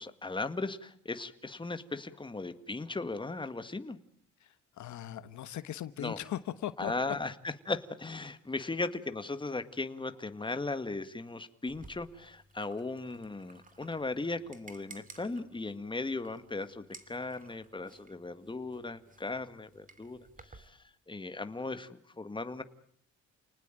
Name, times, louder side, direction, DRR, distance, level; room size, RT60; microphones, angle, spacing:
voice 1, 0.0-4.0 6.0-6.2 6.8-20.8 21.1-22.6, left 3 dB, 15° left, 10 dB, 1.8 m, -37 dB
voice 2, 4.4-6.9, left 12 dB, 70° left, 13 dB, 1.3 m, -39 dB
sound 1, 11.7-20.7, right 3 dB, 25° right, 2.8 m, -56 dB
30.0 x 19.5 x 9.1 m, 0.65 s
cardioid pair, 90°, 30 cm